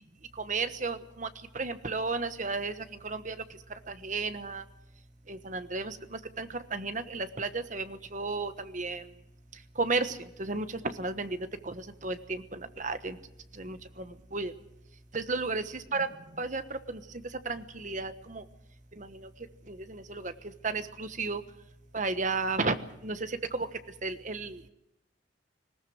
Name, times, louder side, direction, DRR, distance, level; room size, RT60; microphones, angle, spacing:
voice 1, 0.4-1.3 1.5-2.7 3.0-3.4 3.9-4.6 5.3-9.0 9.8-13.2 13.6-14.1 14.3-14.5 15.1-16.1 16.4-17.0 17.4-18.4 19.0-19.3 19.7-20.3 20.6-21.4 21.9-22.8 23.0-23.7 24.0-24.7, right 3 dB, 40° right, 10 dB, 1.2 m, -33 dB
20.0 x 18.5 x 7.9 m, 0.82 s
head